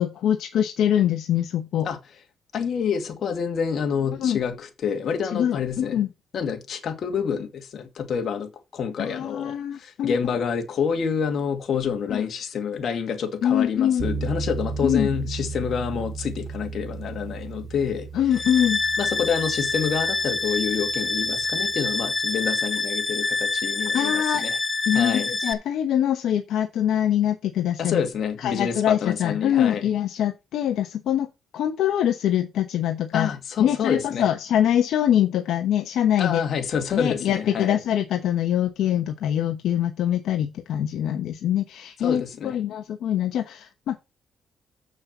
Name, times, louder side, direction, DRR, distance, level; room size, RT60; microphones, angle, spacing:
voice 1, 0.0-1.9 4.2-4.4 5.3-6.1 9.0-10.2 12.1-12.2 13.4-14.0 14.8-15.1 18.1-18.8 23.9-24.4 24.9-28.0 28.4-33.3 33.6-36.4 36.9-44.0, left 10 dB, 80° left, 1.1 m, -24 dB
voice 2, 2.5-6.0 6.3-18.1 19.0-24.6 24.9-25.3 27.8-29.8 33.1-34.3 36.2-37.8 42.0-42.6, left 6 dB, 60° left, 2.2 m, -28 dB
sound 1, 14.0-22.2, right 4 dB, 45° right, 4.6 m, -35 dB
sound 2, 18.3-25.5, left 3 dB, 30° left, 1.0 m, -26 dB
7.5 x 6.4 x 5.5 m
cardioid pair, 90°, 0 cm